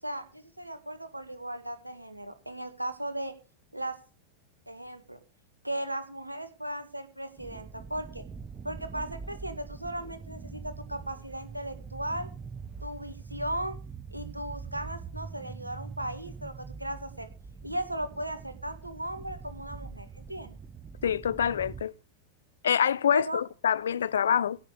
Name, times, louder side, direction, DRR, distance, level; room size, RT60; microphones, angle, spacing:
voice 1, 0.0-3.3 3.7-4.0 4.7-5.2 5.6-8.2 8.6-12.3 12.8-13.8 14.1-17.3 17.6-20.6 23.1-23.4, right 1 dB, 85° right, 1.8 m, -36 dB
sound 1, 7.4-21.8, right 5 dB, 20° right, 1.0 m, -43 dB
voice 2, 21.0-21.9 22.6-24.6, left 8 dB, 65° left, 0.5 m, -26 dB
16.5 x 6.7 x 6.7 m
figure-of-eight pair, 90°, 0 cm